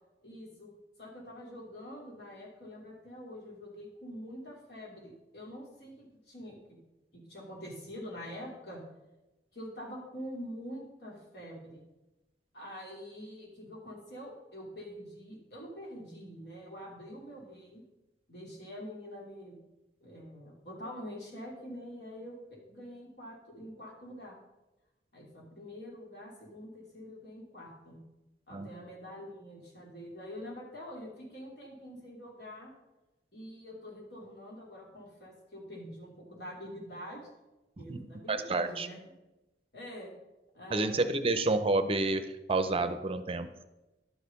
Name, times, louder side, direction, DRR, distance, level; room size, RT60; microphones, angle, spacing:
voice 1, 0.2-0.7 1.0-6.8 7.1-8.8 9.5-11.8 12.5-17.8 18.3-19.6 20.0-24.3 25.1-28.0 28.5-32.7 33.3-37.3 37.8-39.0 39.7-40.1 40.5-41.3, equal, 65° left, -2 dB, 3.1 m, -45 dB
voice 2, 37.8-38.9 40.7-43.5, right 2 dB, 35° right, 10 dB, 0.6 m, -30 dB
11.5 x 6.6 x 5.3 m, 1.0 s
head